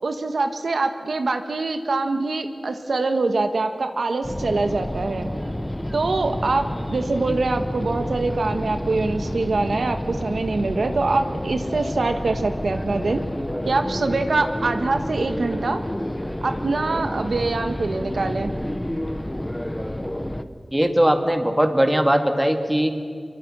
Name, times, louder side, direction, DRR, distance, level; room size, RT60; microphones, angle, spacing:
voice 1, 0.0-5.3 5.9-13.2 13.6-15.8 16.4-18.5, right 3 dB, 85° right, 7 dB, 1.5 m, -24 dB
sound 1, 4.2-20.4, left 1 dB, 15° left, 1.2 m, -29 dB
voice 2, 20.7-23.1, equal, 10° right, 5 dB, 2.3 m, -20 dB
25.5 x 23.5 x 6.3 m, 2.3 s
wide cardioid pair, 80°, 0 cm